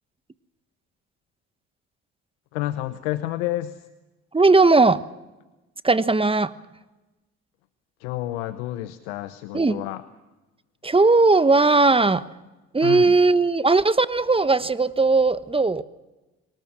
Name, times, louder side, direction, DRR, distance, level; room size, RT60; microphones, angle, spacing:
voice 1, 2.5-3.8 8.0-10.0 12.8-13.1, left 15 dB, 80° left, 0.8 m, -29 dB
voice 2, 4.3-5.0 5.8-6.5 9.5-9.8 10.8-12.3 12.7-15.8, right 3 dB, 15° right, 1.2 m, -18 dB
23.5 x 19.5 x 6.1 m
hypercardioid pair, 50°, 34 cm